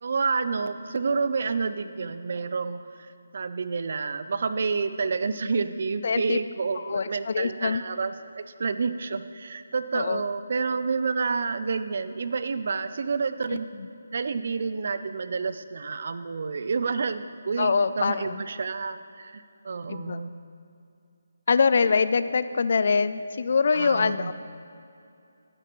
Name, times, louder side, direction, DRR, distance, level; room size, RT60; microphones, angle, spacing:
voice 1, 0.0-13.7 14.1-20.4 23.7-24.3, right 4 dB, 55° right, 12 dB, 0.5 m, -29 dB
voice 2, 6.0-6.4 6.8-7.8 9.9-10.2 13.5-13.9 17.6-18.4 19.9-20.2 21.5-24.3, left 5 dB, 55° left, 14 dB, 0.3 m, -24 dB
12.0 x 9.9 x 3.1 m, 2.5 s
figure-of-eight pair, 155°, 0 cm